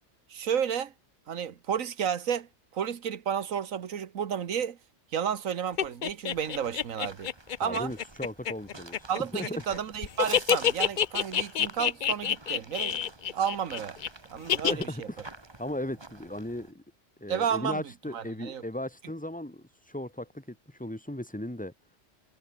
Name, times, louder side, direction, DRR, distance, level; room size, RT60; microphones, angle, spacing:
voice 1, 0.3-0.9 1.3-4.8 5.1-7.3 7.6-7.9 9.1-14.0 14.3-15.1 17.3-17.8 18.1-18.6, right 8 dB, 85° right, 1.6 m, -32 dB
Evil Witch Laugh, 5.8-9.8 10.0-14.1 14.5-14.8, left 9 dB, 50° left, 0.6 m, -27 dB
sound 1, 6.3-16.7, right 2 dB, 20° right, 1.6 m, -47 dB
voice 2, 7.6-9.5 14.6-15.3 15.6-16.8 17.2-21.7, left 1 dB, 5° left, 3.1 m, -37 dB
omnidirectional pair, 1.4 m